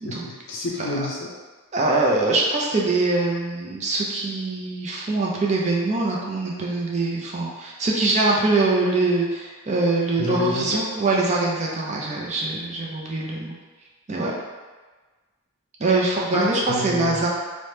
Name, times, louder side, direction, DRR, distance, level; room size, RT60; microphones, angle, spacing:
voice 1, 0.0-1.3 10.2-10.8 16.3-17.2, left 1 dB, 55° left, -2 dB, 0.5 m, -28 dB
voice 2, 1.7-13.5 14.1-14.3 15.8-17.3, right 2 dB, 30° right, -3 dB, 0.4 m, -23 dB
2.8 x 2.1 x 3.1 m, 1.3 s
head